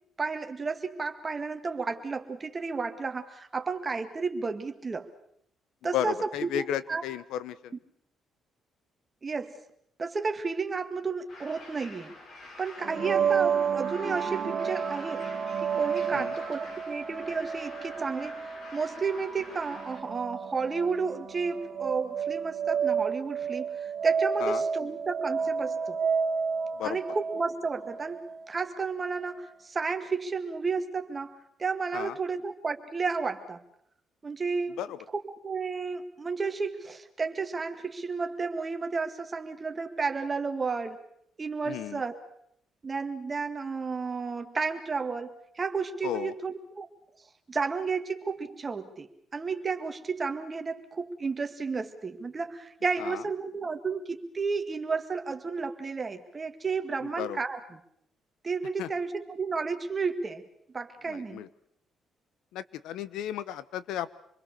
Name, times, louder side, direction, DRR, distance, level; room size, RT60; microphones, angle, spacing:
voice 1, 0.2-5.1 5.8-7.0 9.2-9.6 10.0-12.1 12.6-15.3 15.6-26.0 26.8-28.2 28.5-33.6 34.2-34.8 35.1-41.0 41.4-42.2 42.8-46.9 47.5-57.8 58.4-60.4 60.7-61.5, right 4 dB, 30° right, 6 dB, 2.0 m, -32 dB
voice 2, 5.9-7.7 13.0-13.1 16.1-16.3 24.4-24.6 26.8-27.0 31.9-32.1 34.8-35.0 41.6-42.0 46.0-46.3 53.0-53.2 57.2-57.4 58.8-58.9 61.1-61.5 62.5-64.1, left 11 dB, 90° left, 17 dB, 0.9 m, -34 dB
sound 1, 11.3-20.0, left 2 dB, 65° left, 6.5 m, -47 dB
sound 2, 12.8-28.4, right 6 dB, 60° right, 2.4 m, -31 dB
27.0 x 21.5 x 6.7 m, 0.70 s
cardioid pair, 90°, 0 cm